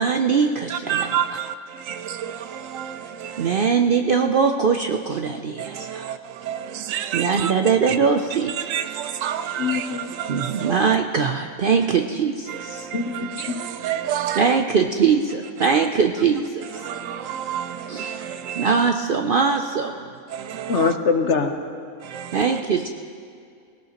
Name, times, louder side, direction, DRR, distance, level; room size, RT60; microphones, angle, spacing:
voice 1, 0.0-1.1 3.4-6.1 7.1-8.6 10.3-12.9 14.4-16.7 17.9-18.1 18.6-19.9 22.3-22.9, right 5 dB, 60° right, 0.6 m, -21 dB
voice 2, 0.7-3.7 5.6-7.5 7.9-8.0 8.3-11.0 12.5-14.6 15.7-15.9 16.6-18.9 19.5-19.6 20.3-20.9 22.0-22.6, right 9 dB, 75° right, 0.9 m, -30 dB
voice 3, 9.6-10.1 12.9-13.6 20.7-21.6, left 5 dB, 60° left, 1.1 m, -23 dB
20.5 x 17.5 x 3.0 m
omnidirectional pair, 1.4 m